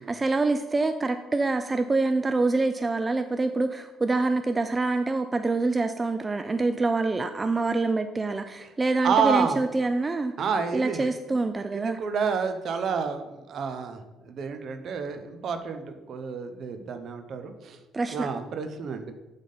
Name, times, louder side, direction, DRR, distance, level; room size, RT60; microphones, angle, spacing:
voice 1, 0.0-10.3 10.7-12.0 17.9-18.3, right 3 dB, 25° right, 8 dB, 0.3 m, -26 dB
voice 2, 9.0-9.6 10.4-11.0 11.7-17.8 18.1-19.1, right 6 dB, 55° right, 8 dB, 0.7 m, -29 dB
7.5 x 3.5 x 5.5 m, 1.1 s
cardioid pair, 100°, 0 cm